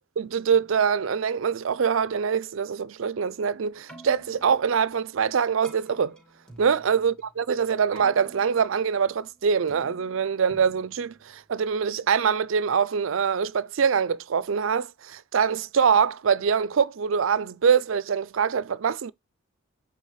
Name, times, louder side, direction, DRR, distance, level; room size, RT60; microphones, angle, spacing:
voice 1, 0.2-6.2 6.6-19.1, right 6 dB, 75° right, 0.5 m, -24 dB
Keyboard (musical), 3.7-11.9, right 1 dB, 5° left, 2.1 m, -51 dB
8.4 x 3.8 x 3.1 m
head